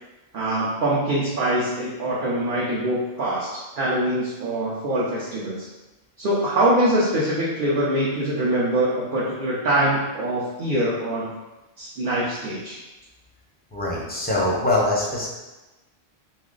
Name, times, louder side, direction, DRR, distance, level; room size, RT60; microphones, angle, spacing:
voice 1, 0.3-5.7 6.2-11.3 11.8-12.8, right 1 dB, 60° right, -7 dB, 0.8 m, -23 dB
voice 2, 13.7-15.3, left 2 dB, 10° left, -5 dB, 0.5 m, -23 dB
2.9 x 2.4 x 3.7 m, 1.1 s
omnidirectional pair, 1.1 m